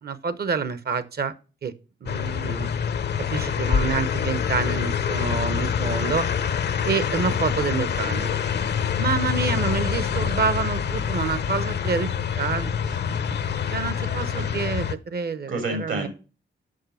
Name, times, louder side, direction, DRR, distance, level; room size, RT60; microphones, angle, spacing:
voice 1, 0.0-1.3 1.6-1.7 2.0-2.7 3.3-6.3 6.8-8.3 9.0-13.0 13.7-16.1, right 5 dB, 55° right, 15 dB, 0.8 m, -28 dB
sound 1, 2.1-14.9, left 7 dB, 60° left, 0.6 m, -26 dB
voice 2, 12.9-13.3 14.0-14.5 15.5-16.1, right 2 dB, 80° right, 5 dB, 2.9 m, -32 dB
6.5 x 5.7 x 5.5 m, 0.34 s
cardioid pair, 65°, 20 cm